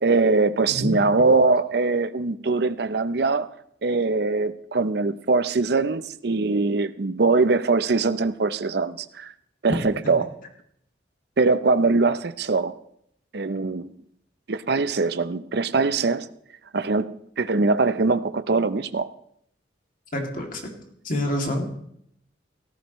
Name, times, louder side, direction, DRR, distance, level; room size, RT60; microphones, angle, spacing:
voice 1, 0.0-3.5 3.8-9.3 9.6-10.3 11.4-12.8 13.3-13.9 14.5-16.3 16.7-19.1, right 3 dB, 60° right, 0.6 m, -22 dB
voice 2, 0.7-1.0 20.1-20.7 21.0-21.7, left 1 dB, 50° left, 2.6 m, -27 dB
17.5 x 14.5 x 3.1 m
head